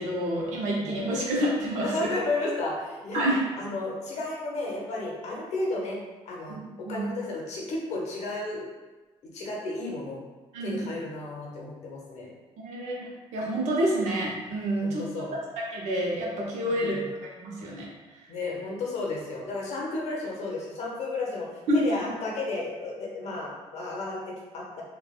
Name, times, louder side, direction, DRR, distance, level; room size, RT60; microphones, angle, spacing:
voice 1, 0.0-2.1 3.1-3.4 6.5-7.1 10.5-10.8 12.6-15.2 15.6-16.9 17.4-18.3 21.7-22.0, right 1 dB, 90° right, -2 dB, 0.7 m, -28 dB
voice 2, 1.8-3.3 3.6-6.0 6.2-8.6 9.3-10.2 10.6-12.3 14.8-15.3 16.7-17.0 18.3-24.8, left 2 dB, 75° left, -2 dB, 0.8 m, -33 dB
3.2 x 2.2 x 2.3 m, 1.2 s
cardioid pair, 95°, 11 cm